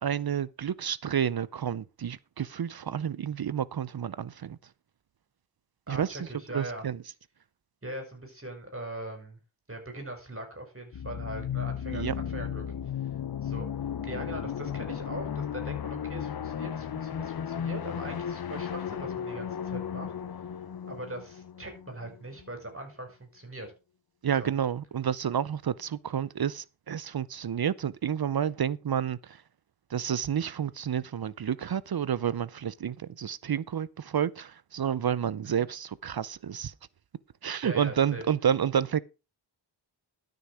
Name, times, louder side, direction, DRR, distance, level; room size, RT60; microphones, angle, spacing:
voice 1, 0.0-4.6 5.9-6.3 6.5-7.0 11.9-12.2 24.2-29.4 29.9-36.7 37.4-39.0, right 8 dB, 50° right, 0.6 m, -30 dB
voice 2, 5.9-6.9 7.8-9.4 9.7-12.7 13.4-13.7 14.0-20.1 20.9-23.7 24.4-24.5 35.4-35.6 37.6-38.2, right 1 dB, 25° right, 5.4 m, -41 dB
sound 1, 10.9-22.5, left 8 dB, 50° left, 0.7 m, -35 dB
12.5 x 6.5 x 4.9 m
cardioid pair, 60°, 48 cm